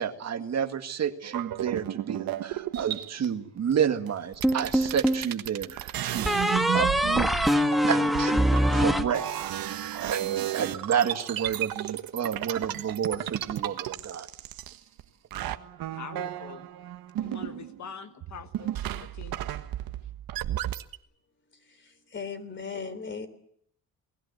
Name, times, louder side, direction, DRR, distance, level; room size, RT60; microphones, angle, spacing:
voice 1, 0.0-6.3 6.7-9.2 9.6-14.3, right 8 dB, 45° right, 8 dB, 1.9 m, -30 dB
sound 1, 1.2-3.3 4.1-4.2 4.3-15.0 15.3-17.9 18.2-21.0, right 12 dB, 70° right, 1.5 m, -34 dB
sound 2, 4.4-5.3 6.2-9.7, equal, ahead, 1.5 m, -24 dB
voice 2, 15.9-16.7 17.2-19.4, left 7 dB, 50° left, 9 dB, 1.4 m, -44 dB
voice 3, 21.5-23.3, left 5 dB, 30° left, 11 dB, 3.6 m, -38 dB
28.5 x 19.5 x 8.0 m, 0.68 s
cardioid pair, 140°, 36 cm